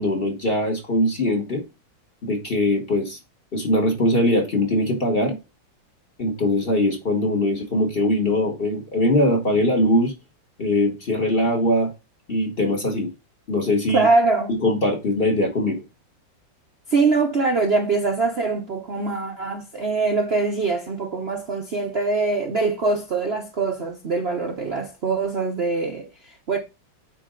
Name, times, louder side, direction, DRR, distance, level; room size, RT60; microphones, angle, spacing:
voice 1, 0.0-1.6 2.2-3.2 3.5-5.3 6.2-10.1 10.6-11.9 12.3-13.1 13.5-14.1 14.5-15.8, left 1 dB, 35° left, 1.3 m, -21 dB
voice 2, 13.9-14.6 16.9-26.6, right 3 dB, 45° right, 0.9 m, -23 dB
8.8 x 3.8 x 3.7 m
omnidirectional pair, 2.0 m